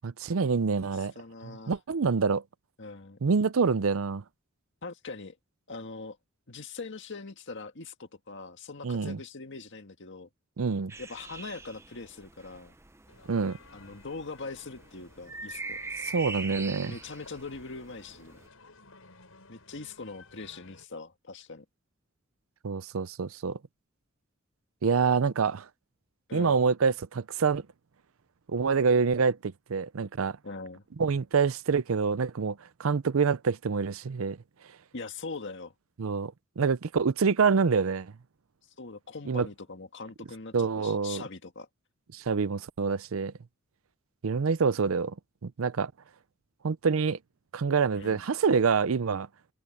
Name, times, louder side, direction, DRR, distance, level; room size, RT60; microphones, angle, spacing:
voice 1, 0.0-1.1 1.4-2.4 3.2-4.2 8.8-9.2 10.6-10.9 13.3-13.6 16.1-16.9 22.6-23.6 24.8-25.7 26.3-27.6 28.5-30.4 31.0-34.4 36.0-38.1 39.3-39.5 40.5-41.2 42.1-43.3 44.2-45.1 45.4-45.9 46.6-47.2 47.5-49.3, right 5 dB, 80° right, 0.6 m, -26 dB
voice 2, 0.9-1.8 2.8-3.2 4.8-5.4 5.7-6.2 6.5-10.3 11.0-12.7 13.7-15.8 16.8-18.4 19.5-21.7 26.3-26.6 30.4-30.8 34.9-35.7 38.8-41.7 48.0-48.2, left 3 dB, 60° left, 1.8 m, -42 dB
sound 1, 10.9-18.5, right 3 dB, 15° right, 0.8 m, -43 dB
sound 2, 13.1-20.8, left 3 dB, 90° left, 5.8 m, -56 dB
head